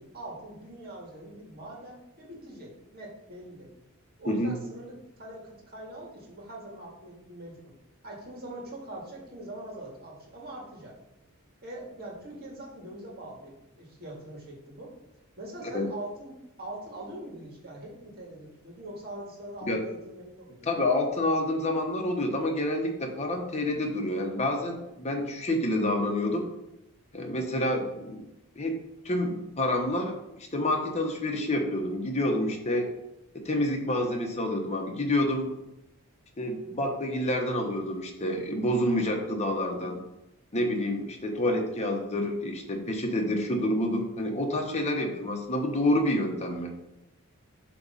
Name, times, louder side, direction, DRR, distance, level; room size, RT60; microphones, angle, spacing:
voice 1, 0.0-3.7 4.2-7.7 8.0-10.9 11.6-14.9 15.4-20.7, right 1 dB, 45° right, -3 dB, 1.9 m, -43 dB
voice 2, 20.6-26.5 27.1-28.2 28.6-28.8 29.0-30.1 30.5-32.9 33.3-35.5 36.4-40.0 40.5-46.7, left 1 dB, 30° left, 2 dB, 1.0 m, -28 dB
7.9 x 3.1 x 5.5 m, 0.89 s
head